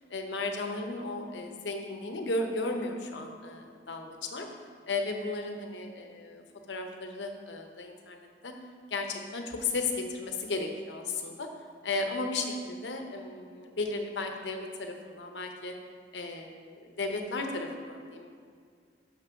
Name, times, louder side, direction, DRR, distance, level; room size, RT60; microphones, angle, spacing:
voice 1, 0.1-4.5 4.9-8.5 8.9-11.5 11.8-15.7 16.1-18.3, left 3 dB, 90° left, 4 dB, 0.9 m, -35 dB
6.1 x 6.1 x 5.8 m, 2.1 s
head